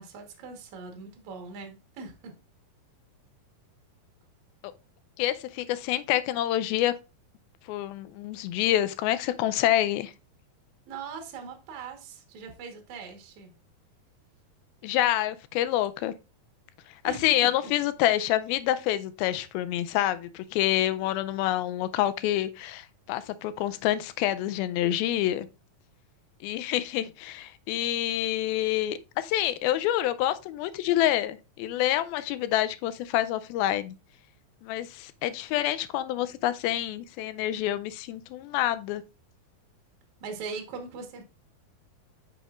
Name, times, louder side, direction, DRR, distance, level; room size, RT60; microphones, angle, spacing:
voice 1, 0.0-2.4 10.9-13.5 17.0-17.2 40.2-41.2, right 5 dB, 60° right, 2.4 m, -40 dB
voice 2, 5.2-6.9 7.7-10.1 14.8-16.1 17.0-25.5 26.4-34.0 34.6-39.0, left 13 dB, 85° left, 2.4 m, -27 dB
9.1 x 6.1 x 2.4 m
omnidirectional pair, 4.2 m